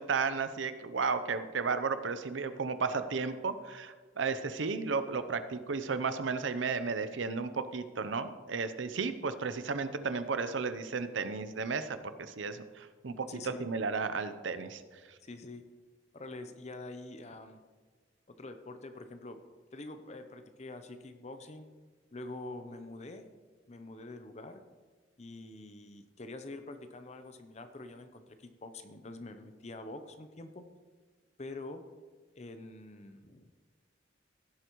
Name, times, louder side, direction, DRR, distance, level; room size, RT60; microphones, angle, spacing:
voice 1, 0.0-14.8, right 4 dB, 80° right, 11 dB, 0.7 m, -34 dB
voice 2, 13.3-13.7 15.2-15.6 16.1-17.6 18.3-19.4 19.7-21.7 22.1-23.2 23.7-24.6 25.2-30.6 31.4-31.9 32.3-33.5, left 2 dB, 35° left, 8 dB, 0.6 m, -45 dB
16.0 x 7.9 x 3.1 m, 1.4 s
head